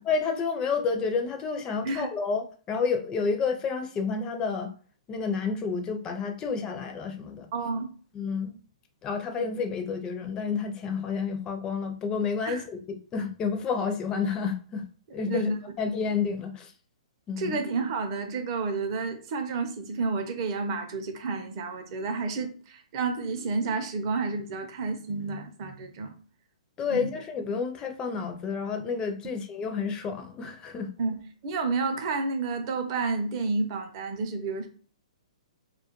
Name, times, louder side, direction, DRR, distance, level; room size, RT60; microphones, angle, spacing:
voice 1, 0.0-4.7 5.1-7.5 8.1-8.6 9.0-14.8 15.1-15.5 15.8-16.7 17.3-17.6 26.8-30.9, left 5 dB, 20° left, 0.4 m, -30 dB
voice 2, 7.5-7.9 12.5-12.6 15.3-15.6 17.4-26.1 26.9-27.1 31.0-34.7, right 4 dB, 45° right, 0.5 m, -30 dB
2.2 x 2.1 x 2.9 m
hypercardioid pair, 140°, 4 cm